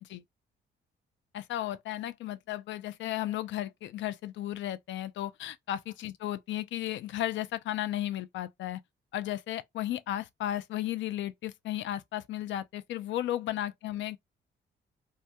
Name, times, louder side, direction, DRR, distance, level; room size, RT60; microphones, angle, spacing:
voice 1, 1.3-8.8 9.1-14.2, left 13 dB, 70° left, 0.4 m, -34 dB
2.2 x 2.2 x 2.7 m
cardioid pair, 90°, 20 cm